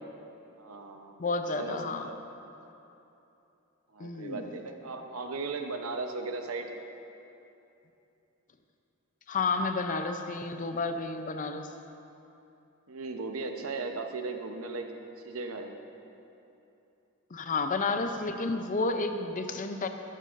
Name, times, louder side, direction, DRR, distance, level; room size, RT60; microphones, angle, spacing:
voice 1, 0.6-1.2 1.5-2.3 3.9-6.7 12.9-14.9 15.2-15.8, right 3 dB, 75° right, 5 dB, 0.8 m, -37 dB
voice 2, 1.2-2.1 4.0-4.5 9.3-11.7 17.3-19.9, left 3 dB, 35° left, 7 dB, 0.5 m, -31 dB
13.0 x 12.0 x 2.6 m, 2.9 s
head